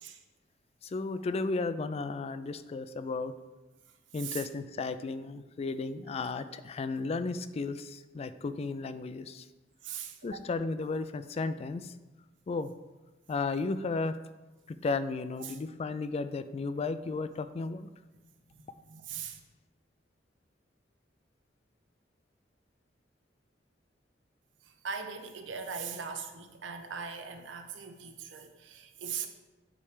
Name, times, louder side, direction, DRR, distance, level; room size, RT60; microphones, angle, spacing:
voice 1, 0.8-3.3 4.1-9.4 10.2-11.9 12.5-12.7 13.3-14.2 14.7-17.9, left 3 dB, 35° left, 12 dB, 0.3 m, -34 dB
voice 2, 9.8-10.4 15.4-15.6 18.5-19.4 24.8-29.3, right 6 dB, 85° right, 6 dB, 0.7 m, -40 dB
8.6 x 3.3 x 4.9 m, 1.1 s
head